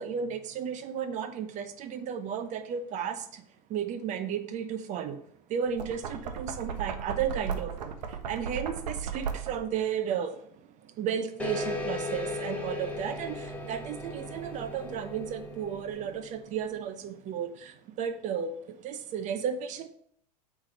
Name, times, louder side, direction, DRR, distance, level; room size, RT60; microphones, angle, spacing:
voice 1, 0.0-3.4 3.7-5.2 5.5-19.9, right 7 dB, 35° right, 11 dB, 0.7 m, -34 dB
Knock, 5.6-9.8, right 7 dB, 80° right, 0.9 m, -36 dB
sound 1, 11.4-16.5, left 3 dB, 5° left, 1.1 m, -37 dB
7.3 x 3.3 x 6.2 m, 0.67 s
hypercardioid pair, 120°, 21 cm